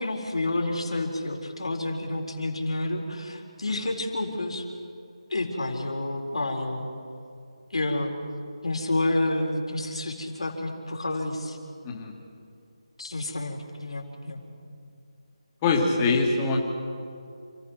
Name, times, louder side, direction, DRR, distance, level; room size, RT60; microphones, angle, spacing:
voice 1, 0.0-4.6 5.3-6.9 7.7-8.1 8.6-11.6 13.0-14.4, left 2 dB, 70° left, 1 dB, 4.2 m, -29 dB
voice 2, 15.6-16.6, left 3 dB, 20° left, 0 dB, 2.5 m, -23 dB
29.0 x 14.5 x 6.1 m, 2.4 s
figure-of-eight pair, 160°, 3 cm